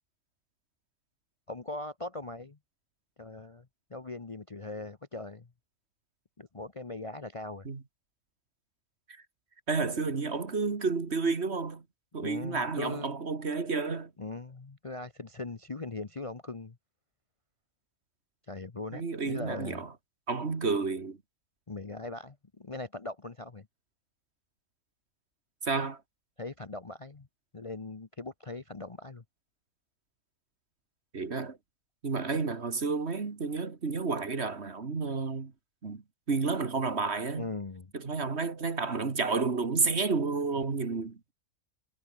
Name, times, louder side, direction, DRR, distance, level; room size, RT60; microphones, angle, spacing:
voice 1, 1.5-2.6 3.2-5.5 6.4-7.7 12.2-13.1 14.2-16.8 18.5-19.8 21.7-23.7 26.4-27.3 27.5-29.2 37.4-37.9, left 3 dB, 25° left, 0.9 m, -40 dB
voice 2, 9.7-11.8 12.1-14.1 18.9-19.9 20.3-21.2 25.6-26.0 31.1-31.6 32.0-35.5 35.8-36.0 36.3-37.5 37.9-41.3, right 4 dB, 50° right, 2.2 m, -31 dB
omnidirectional pair, 1.5 m